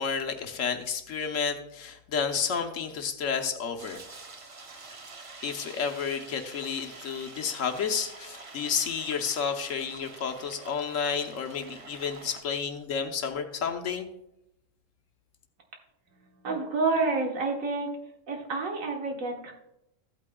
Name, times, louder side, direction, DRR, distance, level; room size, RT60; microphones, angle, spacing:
voice 1, 0.0-4.0 5.4-14.1, left 6 dB, 75° left, 5 dB, 1.3 m, -31 dB
sound 1, 3.8-12.4, right 3 dB, 35° right, 0.6 m, -47 dB
voice 2, 16.4-17.9 18.3-19.5, right 3 dB, 90° right, 1 dB, 1.7 m, -28 dB
14.5 x 8.5 x 2.3 m, 0.85 s
omnidirectional pair, 1.3 m